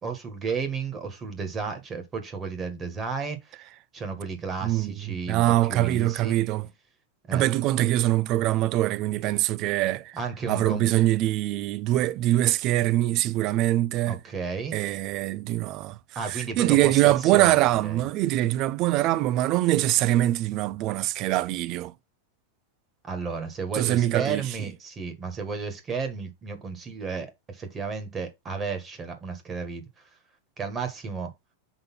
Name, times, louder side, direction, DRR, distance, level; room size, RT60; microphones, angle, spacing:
voice 1, 0.0-3.6 3.9-6.4 7.3-7.4 10.1-10.9 14.1-14.8 16.1-18.0 23.0-30.1 30.6-31.3, right 5 dB, 20° right, 1.7 m, -33 dB
voice 2, 4.6-6.7 7.3-10.2 10.5-14.2 14.7-16.0 16.3-21.9 23.7-24.4, right 15 dB, 40° right, 0.4 m, -23 dB
5.3 x 4.1 x 5.5 m
supercardioid pair, 150°, 0 cm